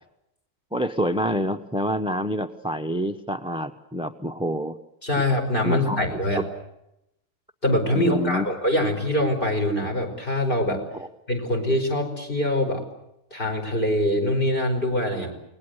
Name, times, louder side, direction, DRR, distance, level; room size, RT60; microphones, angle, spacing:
voice 1, 0.7-4.8 5.6-6.0 6.4-6.5 7.9-8.5, equal, 5° right, 10 dB, 0.8 m, -27 dB
voice 2, 5.0-6.4 7.6-10.8 11.3-12.8 13.3-15.3, left 1 dB, 40° left, 3 dB, 5.4 m, -24 dB
29.5 x 20.0 x 8.1 m, 0.84 s
omnidirectional pair, 1.4 m